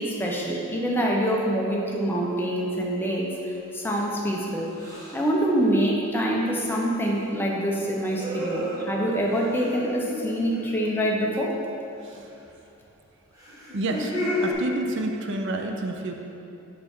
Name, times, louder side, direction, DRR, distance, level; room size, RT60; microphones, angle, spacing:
voice 1, 0.0-4.7 5.1-11.6, equal, 10° left, -2 dB, 0.7 m, -25 dB
sound 1, 2.3-2.6 4.7-5.3 7.9-11.5 13.3-14.5, left 1 dB, 15° right, 1.1 m, -33 dB
voice 2, 13.7-14.1 14.4-16.2, right 2 dB, 55° right, 3 dB, 0.5 m, -29 dB
6.6 x 5.7 x 3.6 m, 2.8 s
head